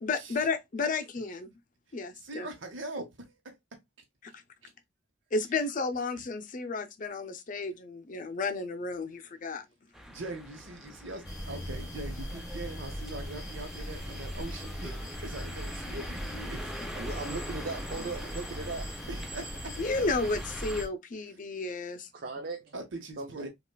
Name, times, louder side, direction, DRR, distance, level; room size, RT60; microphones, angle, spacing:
voice 1, 0.0-1.5 1.9-2.5 4.3-4.4 5.3-9.6 19.8-22.1, left 3 dB, 45° left, 0.6 m, -32 dB
voice 2, 2.1-3.5 4.6-4.7 10.1-16.7 19.1-19.8 22.7-23.5, right 2 dB, 85° right, 0.9 m, -42 dB
sound 1, 9.9-20.8, equal, ahead, 0.6 m, -44 dB
sound 2, 11.2-20.9, equal, 20° left, 1.4 m, -39 dB
voice 3, 17.0-18.9 22.1-22.7 23.2-23.5, right 3 dB, 55° right, 0.5 m, -38 dB
5.3 x 2.4 x 2.2 m
head